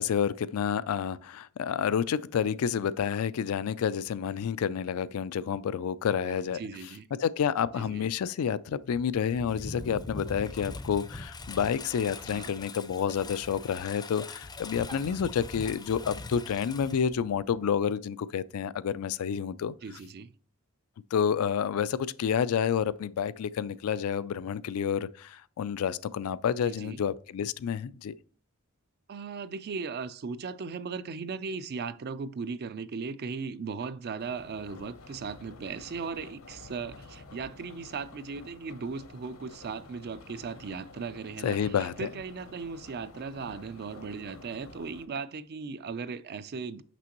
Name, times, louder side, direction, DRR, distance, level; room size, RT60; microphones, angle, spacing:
voice 1, 0.0-6.6 7.2-19.7 21.1-28.1 41.4-42.1, left 7 dB, 90° left, 0.3 m, -29 dB
voice 2, 6.3-7.1 7.7-8.0 12.2-12.6 14.9-15.2 19.8-20.3 26.6-27.0 29.1-46.8, right 5 dB, 50° right, 0.4 m, -37 dB
Engine, 8.9-17.6, left 3 dB, 20° left, 0.5 m, -42 dB
sound 1, 34.2-45.1, left 3 dB, 70° left, 0.8 m, -50 dB
6.0 x 5.9 x 2.9 m
head